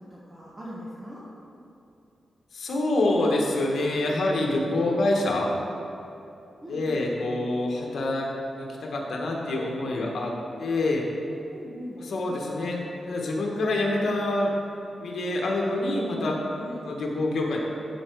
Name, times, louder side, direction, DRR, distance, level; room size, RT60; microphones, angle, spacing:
voice 1, 0.1-1.2 6.6-7.0 11.5-12.0 16.6-16.8, equal, 20° right, -7 dB, 1.2 m, -40 dB
voice 2, 2.5-5.5 6.7-11.1 12.0-12.8 13.1-14.5 15.0-16.4 16.8-17.6, left 2 dB, 75° left, -1 dB, 1.4 m, -26 dB
13.0 x 4.8 x 4.8 m, 2.7 s
wide cardioid pair, 120°, 0 cm